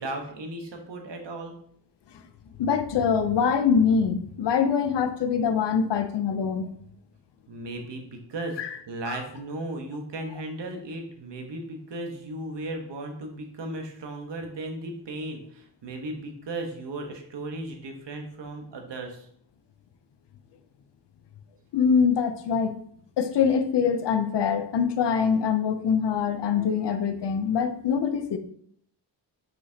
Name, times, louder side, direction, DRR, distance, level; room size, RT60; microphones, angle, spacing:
voice 1, 0.0-1.5 7.5-8.6 8.9-19.3, right 2 dB, 80° right, 1.3 m, -36 dB
voice 2, 2.6-6.7 8.6-8.7 9.1-9.2 21.7-22.8 23.2-28.4, left 6 dB, 75° left, 0.7 m, -24 dB
6.1 x 5.7 x 2.8 m
wide cardioid pair, 170°, 42 cm